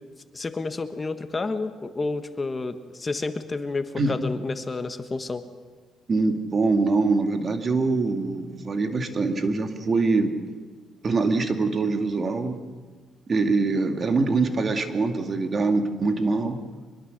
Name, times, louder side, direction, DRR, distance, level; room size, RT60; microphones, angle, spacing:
voice 1, 0.3-5.4, left 3 dB, 25° left, 9 dB, 1.4 m, -30 dB
voice 2, 6.1-10.3 11.0-12.6 13.3-16.6, right 3 dB, 40° right, 6 dB, 2.3 m, -24 dB
25.0 x 22.0 x 6.7 m, 1.4 s
cardioid pair, 90°, 0 cm